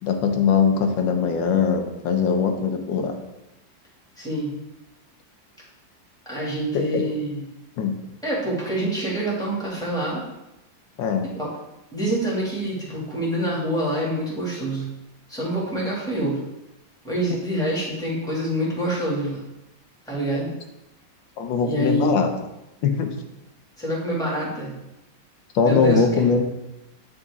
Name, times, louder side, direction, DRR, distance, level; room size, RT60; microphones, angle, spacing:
voice 1, 0.0-3.1 6.7-7.1 7.8-8.0 11.0-11.3 21.4-22.3 22.8-23.1 25.5-26.4, left 5 dB, 75° left, 5 dB, 1.5 m, -21 dB
voice 2, 4.2-4.6 6.3-7.4 8.2-10.2 11.3-11.5 11.9-14.9 15.3-16.4 17.0-19.4 20.1-20.5 21.6-22.1 23.8-24.7 25.6-26.2, right 1 dB, ahead, -7 dB, 2.3 m, -26 dB
9.5 x 3.9 x 3.7 m, 0.92 s
omnidirectional pair, 2.1 m